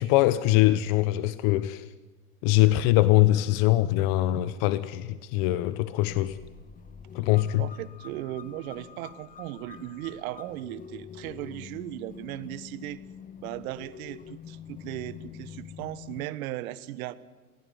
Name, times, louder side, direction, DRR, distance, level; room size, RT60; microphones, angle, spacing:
voice 1, 0.0-1.9 2.4-6.4 7.1-7.7, left 16 dB, 55° left, 1.1 m, -23 dB
sound 1, 6.1-16.3, left 8 dB, 20° left, 1.1 m, -46 dB
voice 2, 7.6-13.0 13.4-17.1, right 14 dB, 70° right, 1.5 m, -37 dB
27.0 x 17.5 x 9.6 m
hypercardioid pair, 110°, 44 cm